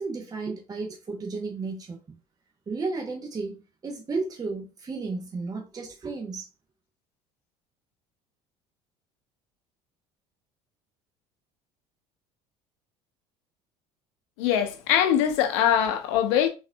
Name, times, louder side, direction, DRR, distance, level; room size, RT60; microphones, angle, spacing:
voice 1, 0.0-2.0 2.7-6.5, right 3 dB, 25° right, 0.8 m, -33 dB
voice 2, 14.4-16.5, left 9 dB, 80° left, 0.7 m, -22 dB
3.8 x 2.5 x 2.2 m
supercardioid pair, 85°, 14 cm